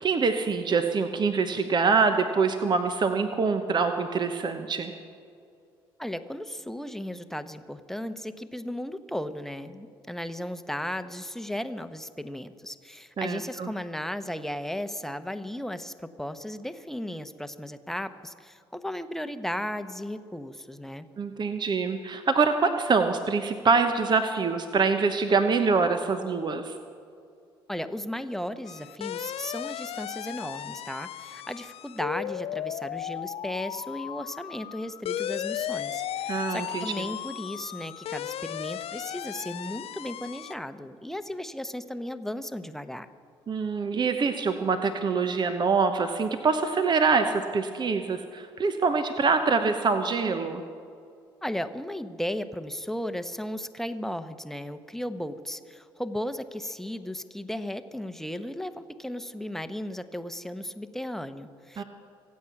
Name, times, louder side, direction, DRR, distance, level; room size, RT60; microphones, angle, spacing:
voice 1, 0.0-4.9 13.2-13.7 21.2-26.8 36.3-36.9 43.5-50.6 61.8-61.9, right 4 dB, 40° right, 8 dB, 1.0 m, -25 dB
voice 2, 6.0-21.1 27.7-43.1 51.4-61.8, left 1 dB, 5° left, 10 dB, 1.0 m, -35 dB
sound 1, 28.7-40.5, left 11 dB, 55° left, 0.6 m, -36 dB
25.5 x 8.5 x 6.0 m, 2.5 s
hypercardioid pair, 55°, 12 cm